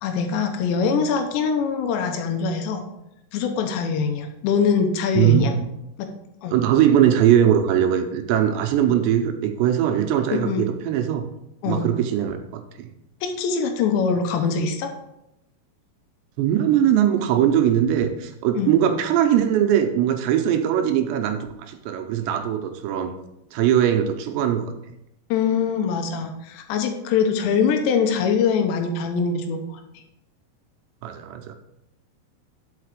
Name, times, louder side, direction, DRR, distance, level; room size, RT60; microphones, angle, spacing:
voice 1, 0.0-2.8 3.3-5.5 6.0-6.1 6.4-6.5 10.3-10.6 11.6-11.9 13.2-14.9 18.6-18.7 25.3-30.0, left 6 dB, 85° left, 5 dB, 3.0 m, -23 dB
voice 2, 5.1-5.6 6.5-11.2 11.7-12.9 16.4-23.1 23.5-24.7 31.0-31.5, right 10 dB, 85° right, 6 dB, 2.9 m, -20 dB
5.9 x 5.8 x 6.4 m, 0.86 s
omnidirectional pair, 5.2 m